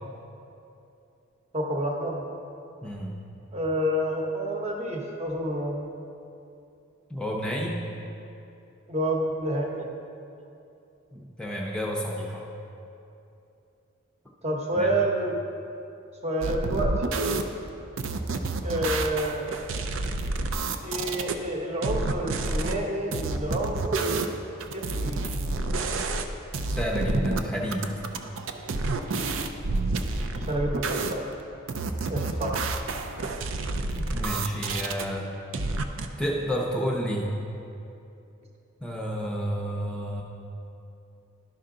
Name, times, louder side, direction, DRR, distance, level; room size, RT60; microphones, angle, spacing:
voice 1, 1.5-2.2 3.5-5.9 8.9-9.9 14.4-15.4 16.2-16.9 18.6-19.5 20.8-24.1 24.7-25.3 30.3-31.3 32.1-32.6, right 1 dB, 30° right, 0 dB, 1.0 m, -29 dB
voice 2, 2.8-3.1 7.1-7.8 11.1-12.5 14.7-14.9 26.7-28.0 33.9-35.3 36.2-37.3 38.8-40.2, equal, 5° left, -2 dB, 0.6 m, -30 dB
sound 1, 16.4-17.4 18.0-21.3 21.8-22.8 23.1-24.3 24.6-26.3 26.5-27.4 27.7-31.1 31.7-35.1 35.5-36.1, right 3 dB, 70° right, 0.5 m, -29 dB
12.0 x 5.7 x 3.8 m, 2.8 s
head